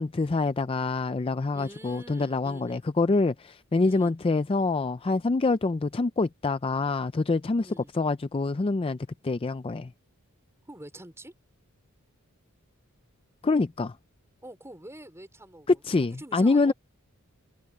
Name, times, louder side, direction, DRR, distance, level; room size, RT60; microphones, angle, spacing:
voice 1, 0.0-9.0 9.2-9.9 13.4-14.0 15.7-16.7, left 3 dB, 25° left, 0.4 m, -26 dB
voice 2, 1.5-2.8 3.8-4.1 7.6-7.9 10.7-11.3 14.4-15.7 16.0-16.7, right 1 dB, 10° right, 4.4 m, -46 dB
head